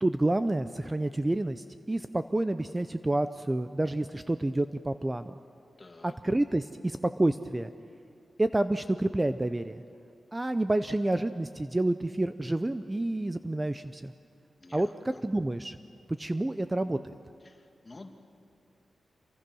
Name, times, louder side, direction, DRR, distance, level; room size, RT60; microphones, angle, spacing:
voice 1, 0.0-5.4 6.0-7.7 8.4-9.8 10.3-14.1 14.7-15.8 16.2-17.2, right 1 dB, 15° right, 10 dB, 0.5 m, -29 dB
voice 2, 5.8-6.2 14.6-15.2 17.4-18.1, left 2 dB, 25° left, 4 dB, 1.9 m, -50 dB
28.0 x 25.0 x 6.2 m, 2.4 s
wide cardioid pair, 135°, 0 cm